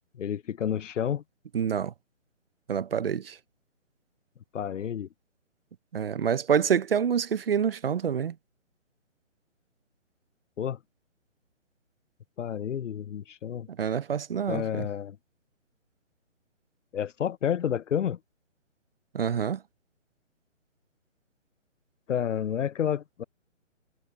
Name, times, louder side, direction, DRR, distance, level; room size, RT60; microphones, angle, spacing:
voice 1, 0.2-1.2 4.5-5.1 10.6-10.8 12.4-13.7 14.5-15.2 16.9-18.2 22.1-23.2, left 9 dB, 70° left, 0.7 m, -30 dB
voice 2, 1.5-1.9 2.7-3.4 5.9-8.3 13.8-14.9 19.1-19.6, right 7 dB, 45° right, 0.9 m, -27 dB
hypercardioid pair, 165°, 38 cm